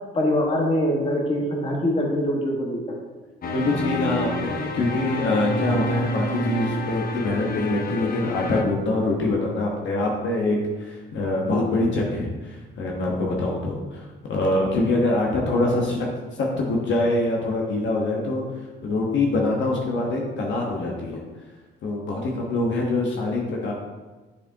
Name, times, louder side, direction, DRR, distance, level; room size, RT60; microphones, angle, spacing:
voice 1, 0.1-2.8, left 1 dB, 30° left, -1 dB, 1.4 m, -23 dB
sound 1, 3.4-8.6, equal, 50° left, 0.8 m, -28 dB
voice 2, 3.5-16.1 16.4-18.4 18.8-21.2 21.8-23.7, left 2 dB, 70° left, -1 dB, 1.1 m, -24 dB
7.4 x 4.8 x 2.7 m, 1.2 s
cardioid pair, 90°, 20 cm